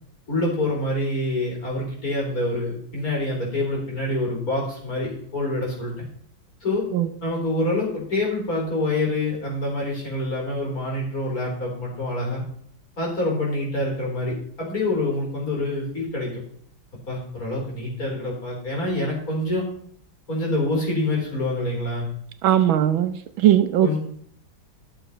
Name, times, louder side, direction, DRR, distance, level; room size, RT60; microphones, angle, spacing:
voice 1, 0.3-6.1 6.6-6.9 7.2-12.4 13.0-16.3 17.1-19.6 20.3-22.1 23.8-24.0, left 2 dB, 45° left, 4.7 m, -26 dB
voice 2, 22.4-24.0, right 11 dB, 80° right, 1.5 m, -19 dB
12.5 x 7.0 x 5.5 m
omnidirectional pair, 2.2 m